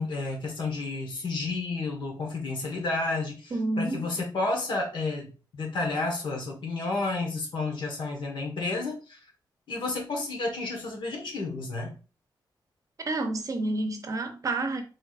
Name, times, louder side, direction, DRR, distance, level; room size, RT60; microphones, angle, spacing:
voice 1, 0.0-9.2 9.7-12.0, left 3 dB, 75° left, 1.3 m, -31 dB
voice 2, 3.5-4.1 13.0-14.8, right 2 dB, 45° right, 0.6 m, -29 dB
4.6 x 3.2 x 2.4 m
wide cardioid pair, 140°, 8 cm